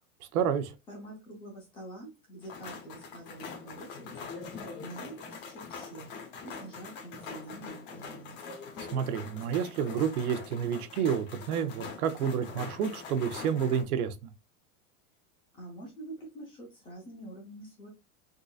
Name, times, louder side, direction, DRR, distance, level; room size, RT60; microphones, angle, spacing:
voice 1, 0.3-0.7 8.9-14.3, right 8 dB, 80° right, 0.7 m, -29 dB
voice 2, 0.9-4.3 4.8-6.1 6.4-8.4 15.5-17.9, right 2 dB, 10° left, 0.6 m, -46 dB
sound 1, 2.4-13.8, left 5 dB, 35° left, 0.9 m, -43 dB
3.8 x 2.5 x 2.3 m
supercardioid pair, 180°, 43 cm